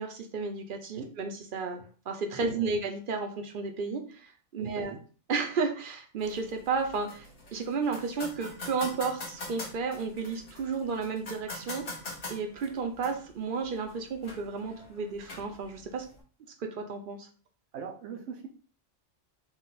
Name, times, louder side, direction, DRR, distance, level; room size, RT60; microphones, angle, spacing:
voice 1, 0.0-1.8 2.1-4.9 5.3-7.3 7.5-11.8 12.3-16.0 16.6-17.3, right 4 dB, 55° right, 4 dB, 0.7 m, -32 dB
voice 2, 2.4-2.7 4.6-5.0 17.7-18.5, right 6 dB, 80° right, 4 dB, 1.0 m, -41 dB
sound 1, 6.2-16.2, left 2 dB, 50° left, 1.2 m, -44 dB
4.1 x 2.3 x 3.9 m, 0.38 s
omnidirectional pair, 1.3 m